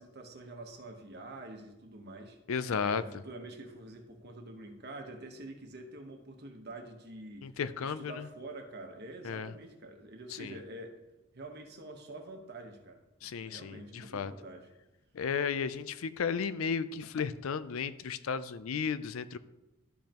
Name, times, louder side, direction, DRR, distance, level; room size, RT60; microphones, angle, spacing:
voice 1, 0.0-2.4 2.8-7.5 7.8-11.0 11.3-13.0 13.3-14.7, right 2 dB, 50° right, 4 dB, 1.1 m, -46 dB
voice 2, 2.5-3.0 7.4-8.2 9.2-9.5 10.4-10.6 13.2-14.3 15.1-19.4, left 6 dB, 75° left, 14 dB, 0.4 m, -34 dB
12.5 x 5.3 x 2.9 m, 0.98 s
head